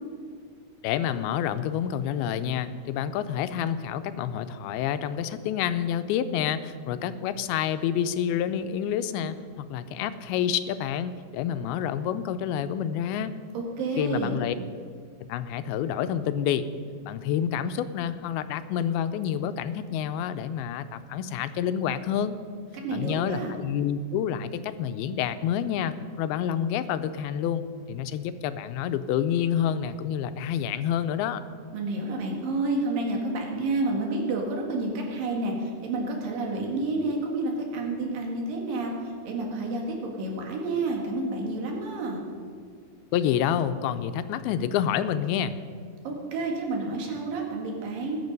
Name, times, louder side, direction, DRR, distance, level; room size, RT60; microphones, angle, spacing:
voice 1, 0.8-13.3 14.0-14.6 15.3-16.7 17.0-22.4 22.9-31.4 43.1-45.6, left 9 dB, 85° left, 12 dB, 2.5 m, -28 dB
voice 2, 13.5-14.4 22.8-23.5 31.7-38.9 39.2-42.3 46.0-48.2, right 2 dB, 65° right, 0 dB, 3.4 m, -29 dB
19.5 x 7.4 x 5.3 m, 2.1 s
omnidirectional pair, 4.4 m